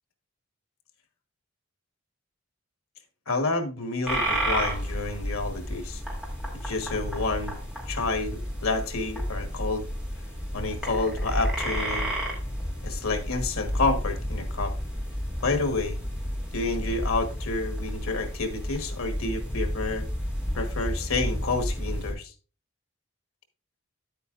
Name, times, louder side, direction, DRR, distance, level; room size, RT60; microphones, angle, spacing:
voice 1, 3.3-6.0 6.5-7.5 7.9-9.9 10.5-12.1 12.8-14.7 15.4-16.0 16.5-20.0 20.5-22.3, left 3 dB, 90° left, 1.3 m, -29 dB
sound 1, 4.0-22.1, equal, 5° right, 2.5 m, -31 dB
9.5 x 8.4 x 2.5 m
head